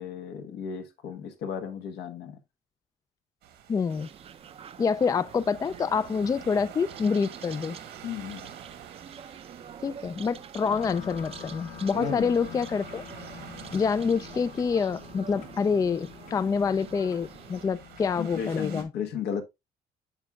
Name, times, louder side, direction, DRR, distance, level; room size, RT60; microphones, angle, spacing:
voice 1, 0.0-2.4 8.0-8.5 11.9-12.6 18.2-19.4, left 8 dB, 75° left, 1.2 m, -34 dB
sound 1, 3.4-18.8, right 9 dB, 85° right, 1.7 m, -49 dB
voice 2, 3.7-4.1 4.8-7.8 9.8-13.0 13.7-18.9, left 5 dB, 20° left, 0.3 m, -27 dB
sound 2, 3.9-17.6, right 8 dB, 35° right, 0.5 m, -46 dB
sound 3, 10.7-18.5, left 7 dB, 50° left, 1.3 m, -46 dB
8.9 x 6.0 x 2.3 m
cardioid pair, 110°, 17 cm